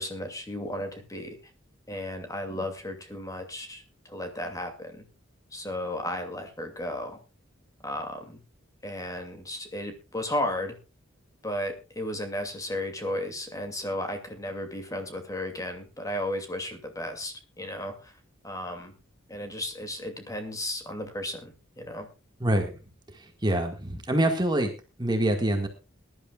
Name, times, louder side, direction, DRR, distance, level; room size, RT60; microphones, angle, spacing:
voice 1, 0.0-1.4 1.9-5.1 5.5-7.2 7.8-8.4 8.8-10.8 11.4-18.1 18.4-18.9 19.3-22.1, left 1 dB, 15° left, 5 dB, 2.5 m, -34 dB
voice 2, 22.4-22.8 23.1-24.7 25.0-25.7, right 1 dB, 20° right, 4 dB, 1.8 m, -25 dB
21.5 x 11.5 x 2.4 m, 0.29 s
head